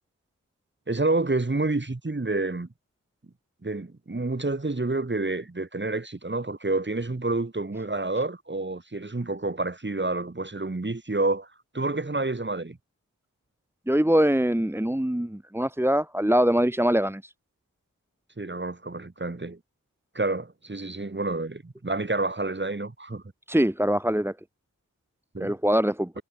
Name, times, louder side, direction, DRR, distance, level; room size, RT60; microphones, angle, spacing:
voice 1, 0.9-2.7 3.6-11.5 11.7-12.8 18.4-19.6 20.1-23.2 25.3-25.6, right 2 dB, 35° right, 6.3 m, -28 dB
voice 2, 13.9-17.2 23.5-24.3 25.4-26.1, equal, 5° right, 2.0 m, -23 dB
cardioid pair, 40°, 34 cm